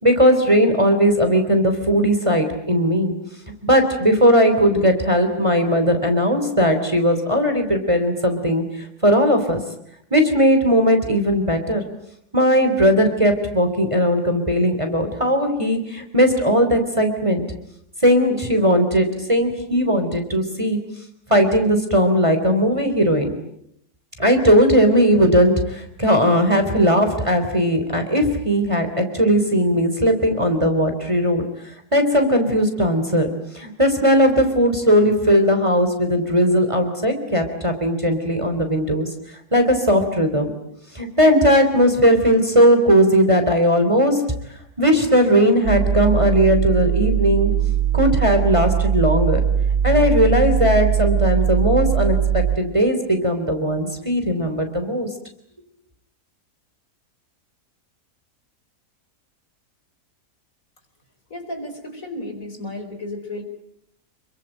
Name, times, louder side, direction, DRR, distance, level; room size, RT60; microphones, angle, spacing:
voice 1, 0.0-3.1 3.6-8.6 9.0-9.6 10.1-11.8 12.3-17.4 18.0-20.8 21.3-23.3 24.2-31.5 31.9-33.3 33.5-39.1 39.5-40.5 40.9-44.2 44.8-47.5 47.9-49.4 49.8-55.1, equal, 20° right, 6 dB, 3.3 m, -18 dB
sound 1, 45.7-52.6, right 8 dB, 75° right, 1.8 m, -20 dB
voice 2, 61.3-63.4, left 1 dB, 55° left, 6 dB, 4.6 m, -33 dB
28.0 x 23.0 x 9.0 m, 0.73 s
omnidirectional pair, 1.7 m